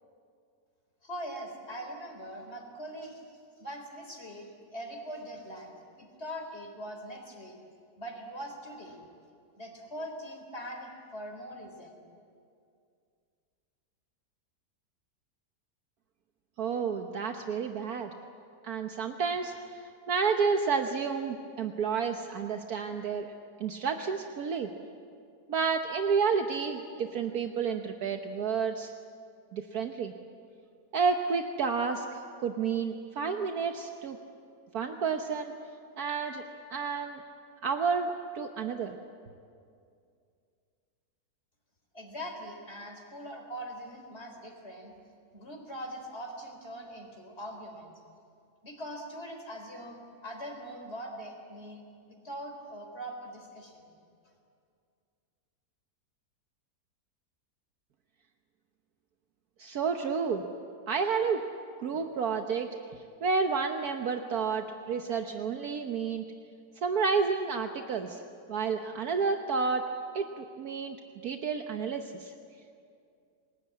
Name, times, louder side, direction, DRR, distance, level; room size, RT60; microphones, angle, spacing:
voice 1, 1.0-3.2 3.6-7.6 8.0-9.0 9.6-12.0 41.9-44.9 45.3-47.9 48.6-51.8 52.1-53.9, equal, 40° left, 3 dB, 4.1 m, -42 dB
voice 2, 16.6-18.1 18.6-23.3 23.6-24.7 25.5-28.9 29.5-30.1 30.9-34.2 34.7-35.5 36.0-36.4 36.7-37.2 37.6-39.0 59.6-60.4 60.9-61.5 61.8-62.7 63.2-66.2 66.8-68.2 68.5-69.9 70.1-71.0 71.2-72.3, right 5 dB, 65° right, 5 dB, 1.5 m, -30 dB
29.5 x 19.5 x 8.6 m, 2.4 s
omnidirectional pair, 1.7 m